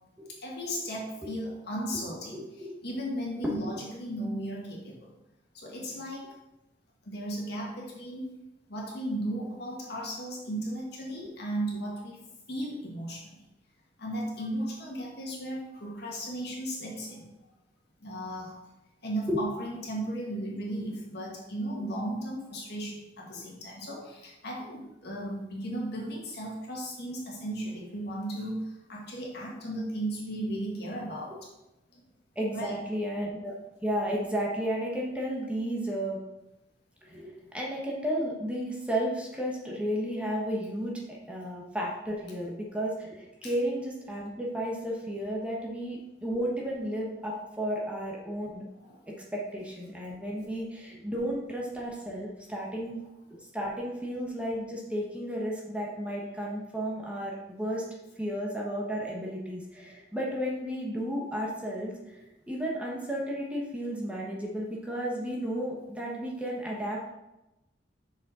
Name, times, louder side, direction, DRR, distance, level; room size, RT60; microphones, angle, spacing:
voice 1, 0.4-2.4 2.8-5.1 5.5-6.3 7.1-8.3 8.7-13.4 14.0-17.3 18.0-18.6 19.0-31.4 31.9-32.0 32.5-32.8 43.4-43.5 48.8-49.1, right 1 dB, 65° left, -3 dB, 1.8 m, -35 dB
voice 2, 2.3-2.7 3.4-3.7 11.1-11.3 19.3-19.4 23.3-23.4 32.3-33.5 33.8-36.2 37.0-48.6 49.1-53.0 53.3-57.8 58.2-67.1, equal, 5° right, -3 dB, 1.1 m, -33 dB
6.2 x 5.0 x 4.2 m, 0.95 s
head